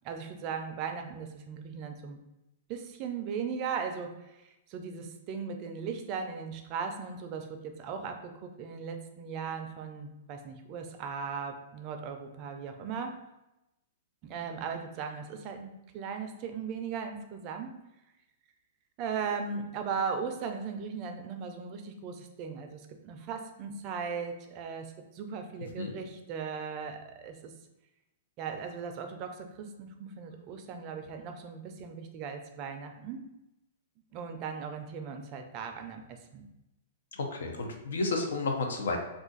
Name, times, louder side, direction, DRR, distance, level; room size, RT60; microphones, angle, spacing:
voice 1, 0.0-2.2 2.7-13.2 14.2-17.7 19.0-27.5 28.4-33.2 34.1-36.4, right 6 dB, 35° right, 5 dB, 0.4 m, -38 dB
voice 2, 37.1-39.0, left 3 dB, 90° left, 3 dB, 0.6 m, -31 dB
2.5 x 2.4 x 3.8 m, 0.92 s
hypercardioid pair, 150°, 0 cm